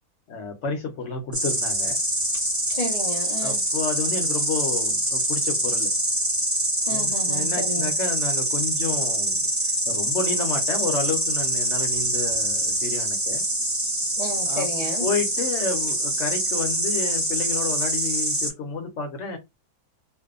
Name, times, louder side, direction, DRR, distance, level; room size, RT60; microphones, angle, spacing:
voice 1, 0.3-2.0 3.4-5.9 6.9-9.5 9.9-13.4 14.5-14.7 15.0-19.4, left 4 dB, 60° left, 0.9 m, -30 dB
Insect, 1.3-18.5, right 1 dB, 30° right, 0.3 m, -25 dB
voice 2, 2.7-3.6 6.9-7.9 14.2-15.1, left 1 dB, 90° left, 0.3 m, -32 dB
2.6 x 2.1 x 2.4 m
omnidirectional pair, 1.6 m